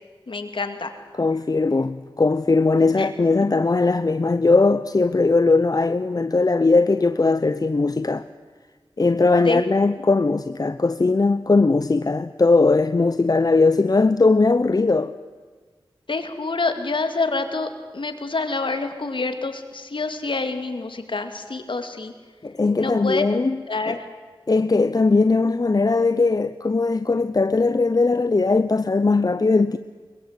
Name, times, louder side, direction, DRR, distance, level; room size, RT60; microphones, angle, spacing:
voice 1, 0.3-0.9 3.0-3.1 9.4-9.6 16.1-22.1 22.8-23.2 23.7-24.0, left 3 dB, 65° left, 2.3 m, -27 dB
voice 2, 1.2-8.3 9.0-15.1 22.4-23.6 23.9-24.0 24.5-29.8, left 3 dB, 45° left, 0.7 m, -19 dB
22.5 x 21.5 x 8.2 m
cardioid pair, 45°, 9 cm